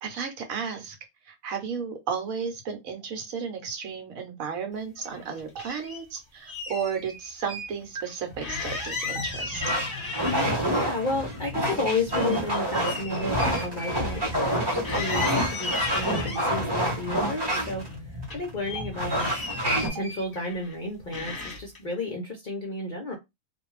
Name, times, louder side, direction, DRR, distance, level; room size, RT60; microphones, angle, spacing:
voice 1, 0.0-1.0 1.3-9.6, right 6 dB, 70° right, 1.2 m, -33 dB
sound 1, 5.0-6.0 6.5-7.7 8.0-8.1 8.4-10.8 11.2-14.6 14.8-16.5 17.1-18.0 18.2-20.8 21.1-21.8, left 3 dB, 15° left, 1.0 m, -36 dB
Stream, 5.5-5.6 6.7-6.8 7.9-8.0 9.1-9.2 10.3-10.4 11.5-11.6 12.7-12.8 13.9-14.0 15.1-15.2 16.3-16.4 17.5-17.6 18.7-18.8 19.9-20.0, right 6 dB, 55° right, 0.7 m, -35 dB
sound 2, 8.3-19.9, equal, 20° right, 0.7 m, -28 dB
voice 2, 10.8-23.2, left 2 dB, 50° left, 0.6 m, -32 dB
2.5 x 2.3 x 3.1 m
omnidirectional pair, 1.5 m